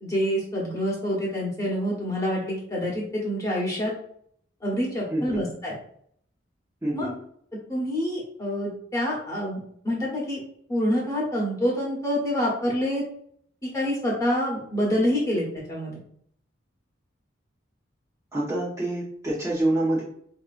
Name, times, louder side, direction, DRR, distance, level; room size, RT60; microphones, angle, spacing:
voice 1, 0.0-3.9 4.6-5.8 6.9-7.1 7.7-10.4 10.7-13.0 13.7-16.0, equal, 20° left, -4 dB, 1.4 m, -27 dB
voice 2, 5.1-5.4 6.8-7.1 18.3-20.0, right 1 dB, 15° right, -7 dB, 0.9 m, -26 dB
4.9 x 2.9 x 2.5 m, 0.65 s
head